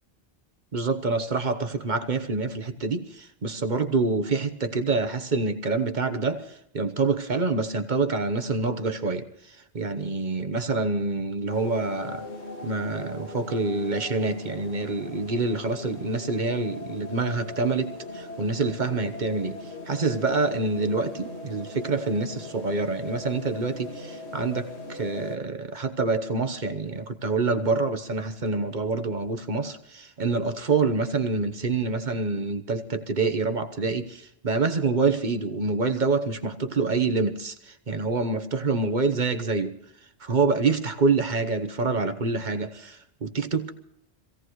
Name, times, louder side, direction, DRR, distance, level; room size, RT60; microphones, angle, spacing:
voice 1, 0.7-12.3 12.6-39.8 40.2-43.7, right 3 dB, 45° right, 1.2 m, -26 dB
sound 1, 11.5-25.4, left 2 dB, 80° left, 2.1 m, -39 dB
26.0 x 16.5 x 3.1 m
omnidirectional pair, 1.1 m